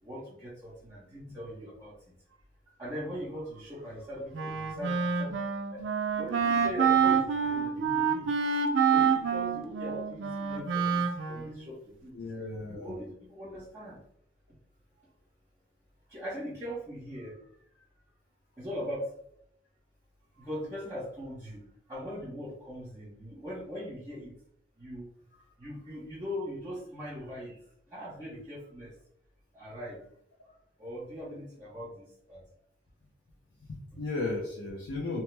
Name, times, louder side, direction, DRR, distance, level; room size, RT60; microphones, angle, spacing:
voice 1, 0.0-2.0 2.8-5.4 5.7-5.9 6.1-8.3 8.9-12.3 12.7-14.0 16.1-17.5 18.6-19.1 20.4-21.6 21.9-24.3 24.8-27.6 27.9-28.9 29.5-30.0 30.8-32.4, equal, 15° right, -9 dB, 0.8 m, -40 dB
Wind instrument woodwind instrument, 4.3-11.7, right 6 dB, 75° right, 0.4 m, -27 dB
voice 2, 12.1-13.0 33.6-35.2, left 2 dB, 75° left, -3 dB, 0.5 m, -35 dB
2.9 x 2.0 x 3.2 m, 0.72 s
head